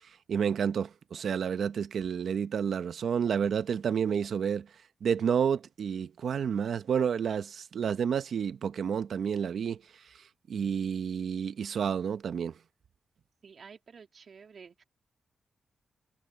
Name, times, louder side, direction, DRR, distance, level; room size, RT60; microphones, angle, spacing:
voice 1, 0.3-4.7 5.0-9.8 10.5-12.5, right 7 dB, 75° right, 0.9 m, -30 dB
voice 2, 13.4-14.8, right 6 dB, 55° right, 3.7 m, -51 dB
cardioid pair, 90°, 0 cm